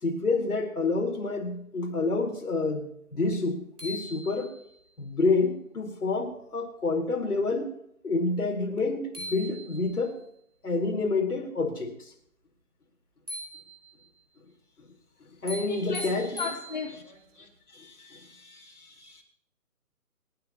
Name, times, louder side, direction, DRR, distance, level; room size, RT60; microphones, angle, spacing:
voice 1, 0.0-4.5 5.0-7.7 8.0-10.1 10.6-12.1 15.4-16.4 17.7-19.2, left 3 dB, 80° left, 1 dB, 4.4 m, -28 dB
sound 1, 3.3-3.4 3.8-4.9 8.8-8.9 9.1-10.2 13.3-14.2 15.5-17.2, equal, 90° right, 4.6 m, -41 dB
voice 2, 15.7-16.9, left 5 dB, 30° left, 2 dB, 1.1 m, -35 dB
28.0 x 10.0 x 3.0 m, 0.71 s
hypercardioid pair, 180°, 45 cm